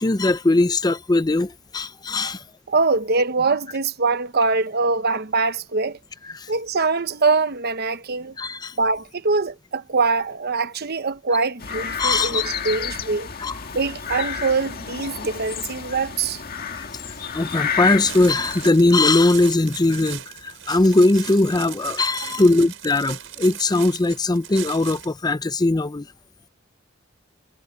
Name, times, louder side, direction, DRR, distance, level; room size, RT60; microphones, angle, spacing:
voice 1, 0.0-2.4 6.3-6.5 8.4-8.7 12.0-12.4 13.4-13.5 16.8-17.0 17.3-26.1, left 2 dB, 20° left, 0.6 m, -20 dB
voice 2, 2.7-6.0 6.5-8.4 8.8-13.3 13.7-16.4, right 4 dB, 55° right, 1.0 m, -23 dB
sound 1, 11.6-18.7, left 7 dB, 50° left, 1.9 m, -30 dB
sound 2, 18.0-25.2, right 11 dB, 75° right, 5.5 m, -38 dB
head